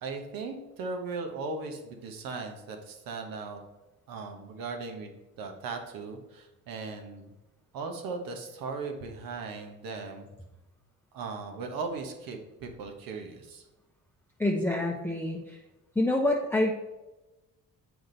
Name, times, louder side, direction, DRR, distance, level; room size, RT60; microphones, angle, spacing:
voice 1, 0.0-3.6 4.1-7.3 7.7-10.3 11.1-13.7, right 4 dB, 80° right, 4 dB, 1.2 m, -38 dB
voice 2, 14.4-15.6 16.0-16.7, left 1 dB, 5° left, 0 dB, 0.7 m, -27 dB
7.5 x 5.1 x 4.0 m, 1.0 s
cardioid pair, 80°, 34 cm